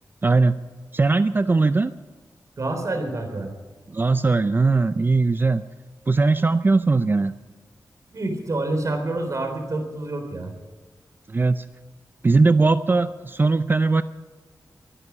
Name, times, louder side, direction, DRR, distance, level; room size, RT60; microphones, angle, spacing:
voice 1, 0.2-0.6 0.9-1.9 3.9-5.6 6.1-7.3 11.3-11.6 12.2-14.0, right 3 dB, 30° right, 12 dB, 0.5 m, -19 dB
voice 2, 2.6-3.5 8.1-10.5, right 2 dB, 50° right, 5 dB, 3.6 m, -27 dB
23.0 x 9.8 x 6.2 m, 1.4 s
wide cardioid pair, 105°, 7 cm